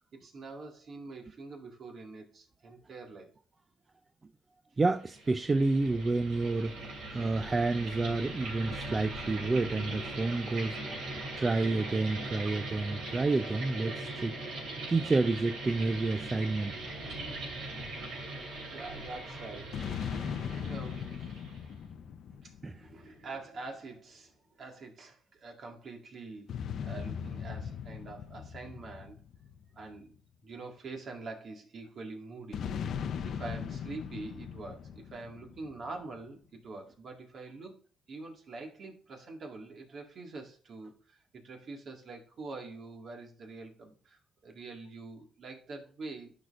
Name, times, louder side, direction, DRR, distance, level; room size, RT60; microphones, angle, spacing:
voice 1, 0.2-3.3 18.7-19.8 20.6-21.1 22.4-29.2 29.7-30.2 30.4-32.7 33.2-37.8 38.1-46.3, right 3 dB, 55° right, 1.9 m, -45 dB
voice 2, 4.8-10.8 11.4-14.4 14.9-16.8 22.6-22.9, right 3 dB, 25° right, 0.4 m, -29 dB
sound 1, 5.0-21.7, right 2 dB, 80° right, 3.1 m, -40 dB
sound 2, 19.7-23.4 26.5-30.2 32.5-36.0, left 7 dB, 65° left, 0.6 m, -39 dB
12.0 x 5.0 x 2.5 m
cardioid pair, 90°, 0 cm